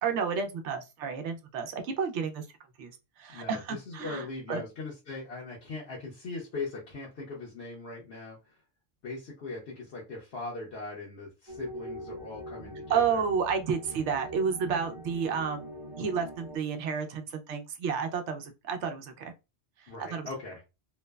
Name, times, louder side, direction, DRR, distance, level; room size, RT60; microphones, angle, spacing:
voice 1, 0.0-2.4 2.8-2.9 3.2-4.6 12.9-15.6 16.0-19.3 20.1-20.3, right 6 dB, 90° right, 0.9 m, -31 dB
voice 2, 3.3-8.6 9.0-13.2 19.9-20.6, left 3 dB, 70° left, 1.1 m, -40 dB
sound 1, 11.5-16.6, equal, 25° right, 0.6 m, -43 dB
3.0 x 2.0 x 2.2 m
omnidirectional pair, 1.1 m